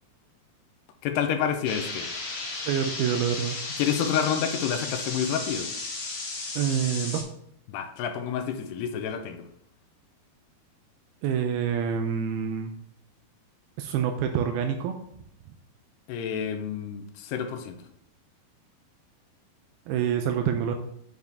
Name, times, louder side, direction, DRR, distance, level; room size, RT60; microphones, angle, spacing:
voice 1, 1.0-2.1 3.8-5.7 7.7-9.4 16.1-17.8, left 8 dB, 80° left, 7 dB, 2.7 m, -29 dB
sound 1, 1.6-7.2, left 3 dB, 60° left, 3.5 m, -34 dB
voice 2, 2.7-3.6 6.6-7.2 11.2-12.7 13.8-14.9 19.9-20.8, right 8 dB, 80° right, 6 dB, 2.3 m, -26 dB
9.3 x 4.7 x 3.5 m, 0.72 s
omnidirectional pair, 4.8 m